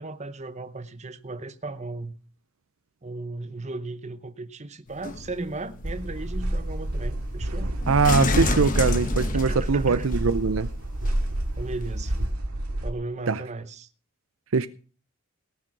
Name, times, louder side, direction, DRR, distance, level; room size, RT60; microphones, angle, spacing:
voice 1, 0.0-2.1 3.0-7.7 9.5-10.1 11.6-12.1 12.8-13.9, right 2 dB, 30° right, 0.8 m, -36 dB
sound 1, 4.9-10.2 11.1-11.2, left 2 dB, 35° left, 1.0 m, -29 dB
sound 2, 5.8-12.9, right 1 dB, 90° right, 2.1 m, -29 dB
voice 2, 7.9-10.7 13.3-13.4 14.5-14.7, right 4 dB, 65° right, 0.6 m, -22 dB
18.5 x 6.6 x 6.0 m
head